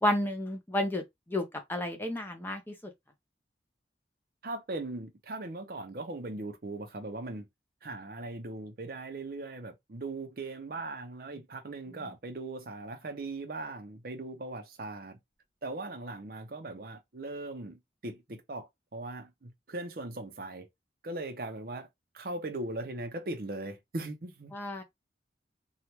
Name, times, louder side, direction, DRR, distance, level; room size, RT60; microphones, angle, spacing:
voice 1, 0.0-2.9 24.5-24.8, left 1 dB, 10° left, 0.6 m, -31 dB
voice 2, 4.4-7.5 7.8-15.2 15.6-20.7 21.0-21.9 22.1-24.5, right 2 dB, 55° right, 0.7 m, -39 dB
3.1 x 2.4 x 2.8 m
head